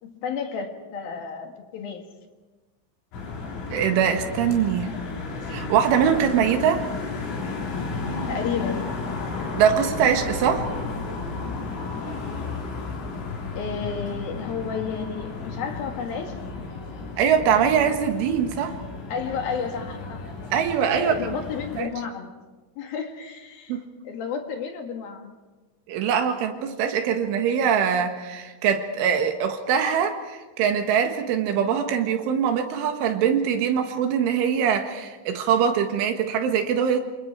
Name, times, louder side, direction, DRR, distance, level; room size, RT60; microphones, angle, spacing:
voice 1, 0.0-2.0 8.3-9.1 13.5-16.4 19.1-20.2 20.9-22.3 22.8-23.8 24.0-25.3, left 6 dB, 60° left, 4 dB, 2.9 m, -32 dB
sound 1, 3.1-21.8, left 4 dB, 85° left, 6.3 m, -33 dB
voice 2, 3.7-5.0 5.5-6.8 9.5-10.7 17.2-18.8 20.5-21.1 21.8-21.9 23.7-23.8 25.9-37.0, right 8 dB, 75° right, 5 dB, 4.1 m, -22 dB
27.0 x 26.5 x 4.7 m, 1.2 s
omnidirectional pair, 5.7 m